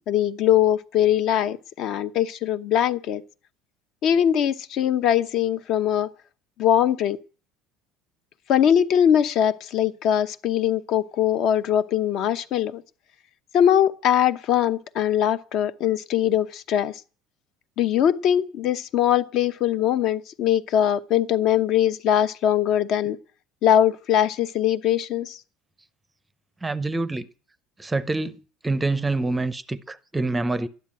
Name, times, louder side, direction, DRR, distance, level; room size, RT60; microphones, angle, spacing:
voice 1, 0.1-3.2 4.0-6.1 6.6-7.2 8.5-12.8 13.5-17.0 17.8-23.2 23.6-25.4, left 10 dB, 45° left, 0.9 m, -21 dB
voice 2, 26.6-27.3 27.8-28.4 28.6-30.7, right 2 dB, 10° right, 0.6 m, -26 dB
12.5 x 10.0 x 8.8 m
cardioid pair, 160°, 0 cm